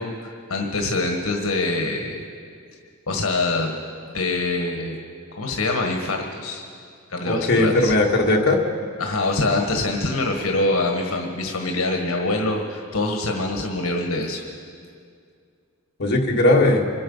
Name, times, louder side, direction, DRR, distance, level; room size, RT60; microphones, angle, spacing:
voice 1, 0.0-2.2 3.1-3.7 4.1-5.0 5.4-6.6 7.1-7.9 9.0-14.4, left 2 dB, 75° left, 2 dB, 1.5 m, -24 dB
voice 2, 7.2-8.6 16.0-16.9, left 2 dB, 50° left, -1 dB, 1.7 m, -18 dB
25.5 x 8.8 x 5.5 m, 2.3 s
head